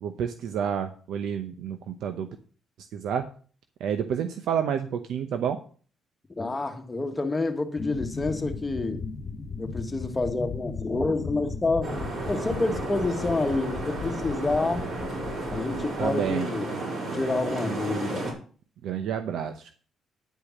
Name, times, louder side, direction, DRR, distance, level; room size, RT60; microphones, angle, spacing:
voice 1, 0.0-2.3 2.9-3.3 3.8-5.6 16.0-16.5 18.8-19.7, right 8 dB, 80° right, 0.7 m, -29 dB
voice 2, 6.4-9.0 9.6-11.9 12.3-14.9 15.5-16.7 17.1-18.3, left 3 dB, 20° left, 1.5 m, -28 dB
sound 1, 7.8-16.3, left 4 dB, 50° left, 1.3 m, -37 dB
sound 2, 11.8-18.3, right 2 dB, 60° right, 4.4 m, -33 dB
10.0 x 5.1 x 7.2 m
cardioid pair, 90°, 0 cm